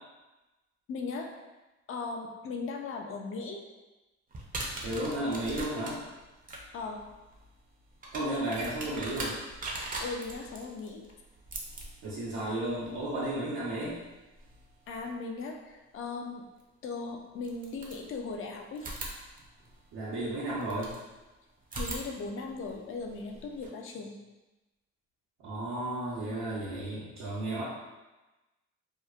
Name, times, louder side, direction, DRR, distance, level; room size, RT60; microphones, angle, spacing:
voice 1, 0.9-1.3 1.9-3.6 6.7-7.0 10.0-11.0 14.9-16.4 16.8-18.9 21.8-24.1, left 4 dB, 45° left, 2 dB, 0.4 m, -38 dB
sound 1, 4.3-15.1 16.6-16.7 17.4-18.4 18.8-21.0 21.6-23.7, right 2 dB, 30° right, 0.5 m, -42 dB
voice 2, 4.8-6.0 8.1-9.4 12.0-14.0 19.9-20.9 25.4-27.6, right 1 dB, 90° right, -11 dB, 0.8 m, -33 dB
2.9 x 2.0 x 2.3 m, 1.1 s
cardioid pair, 90°, 30 cm